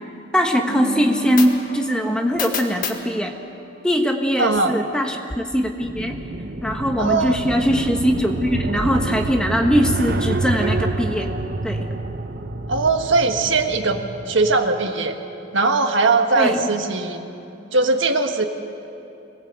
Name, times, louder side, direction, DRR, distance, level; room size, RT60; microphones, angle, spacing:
voice 1, 0.3-3.3 3.8-6.2 6.6-11.3 11.6-11.9 16.4-16.6, equal, 5° left, 3 dB, 1.3 m, -21 dB
sound 1, 0.7-4.2, left 3 dB, 45° left, 1.9 m, -30 dB
voice 2, 4.4-4.7 7.0-7.4 12.7-15.2 15.5-17.2 17.7-18.4, right 3 dB, 70° right, 5 dB, 1.6 m, -20 dB
sound 2, 5.8-14.6, right 2 dB, 50° right, 0.9 m, -28 dB
25.0 x 18.5 x 8.1 m, 2.8 s
head